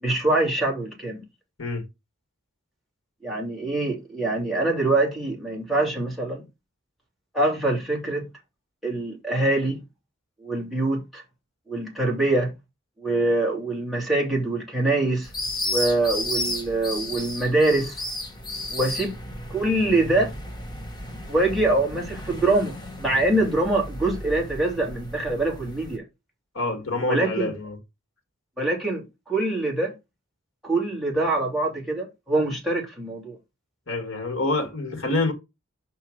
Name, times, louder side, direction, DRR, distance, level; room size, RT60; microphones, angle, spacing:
voice 1, 0.0-1.2 3.2-6.4 7.3-8.3 8.8-9.8 10.4-11.2 11.7-12.5 13.0-15.3 15.7-18.0 18.7-19.1 19.5-20.3 21.3-26.0 27.1-27.5 28.6-29.9 30.6-33.4, right 2 dB, ahead, 2.9 m, -24 dB
sound 1, 15.2-26.0, left 1 dB, 20° left, 1.2 m, -33 dB
voice 2, 26.5-27.8 33.9-35.3, left 2 dB, 60° left, 1.7 m, -26 dB
5.6 x 4.6 x 6.4 m
head